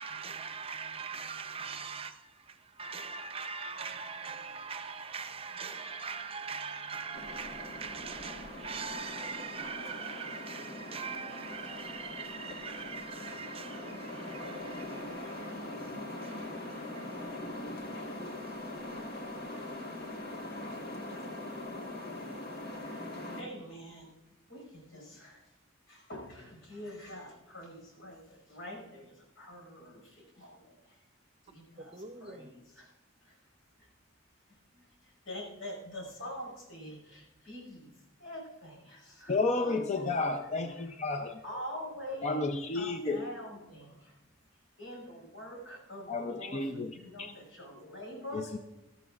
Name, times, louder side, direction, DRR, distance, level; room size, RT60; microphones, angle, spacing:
voice 1, 0.0-17.3 31.9-32.5, right 5 dB, 30° right, 0.7 m, -42 dB
sound 1, 7.1-23.4, left 1 dB, 55° left, 1.7 m, -42 dB
voice 2, 22.5-24.1 24.5-25.5 25.9-31.0 31.4-32.9 33.2-33.4 33.8-33.9 34.7-37.9 38.2-40.3 40.8-40.9 41.4-44.2 44.8-48.5, equal, 85° left, 5.5 m, -45 dB
voice 3, 39.3-41.4 42.2-43.3 46.1-47.3 48.3-48.6, left 3 dB, 35° left, 0.6 m, -32 dB
20.0 x 13.0 x 2.4 m
head